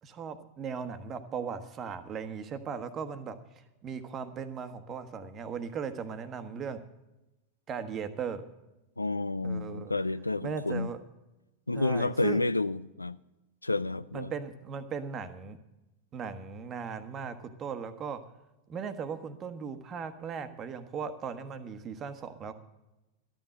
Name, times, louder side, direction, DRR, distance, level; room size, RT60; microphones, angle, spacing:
voice 1, 0.0-6.8 7.7-8.4 9.4-9.9 10.4-11.0 11.7-12.4 14.1-15.6 16.1-18.2 18.7-22.5, right 6 dB, 30° right, 1.1 m, -38 dB
voice 2, 9.0-10.9 11.7-13.2 13.6-14.3, left 2 dB, 85° left, 0.3 m, -30 dB
13.0 x 9.1 x 6.4 m
figure-of-eight pair, 90°, 0 cm